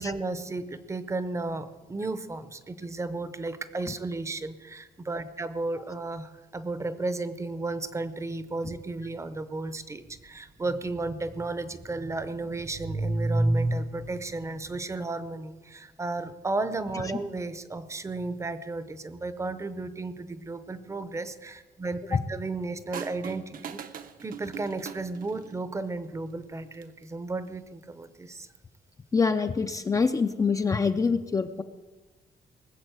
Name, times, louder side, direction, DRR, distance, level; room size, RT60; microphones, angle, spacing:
voice 1, 0.0-23.8 24.2-28.5, right 2 dB, 20° right, 13 dB, 0.7 m, -33 dB
sound 1, 22.9-25.6 26.6-27.0, right 8 dB, 65° right, 0.8 m, -41 dB
voice 2, 29.1-31.6, left 5 dB, 20° left, 8 dB, 0.4 m, -25 dB
19.5 x 7.2 x 8.0 m, 1.3 s
wide cardioid pair, 170°, 16 cm